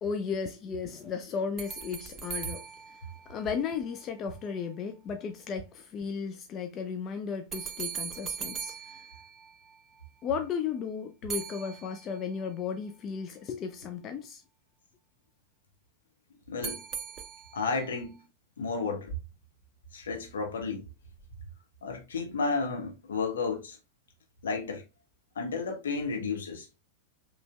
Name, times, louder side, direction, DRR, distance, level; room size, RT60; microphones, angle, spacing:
voice 1, 0.0-2.7 3.3-9.0 10.2-14.4, left 6 dB, 30° left, 0.5 m, -35 dB
sound 1, 1.6-4.0 7.5-10.0 11.3-12.5 16.6-17.9, right 7 dB, 25° right, 0.5 m, -40 dB
voice 2, 16.5-16.8 17.5-18.2 18.6-19.1 19.9-20.8 21.8-23.8 24.4-24.8 25.4-26.7, left 4 dB, 65° left, 1.1 m, -32 dB
5.1 x 3.2 x 2.3 m
figure-of-eight pair, 90°, 0 cm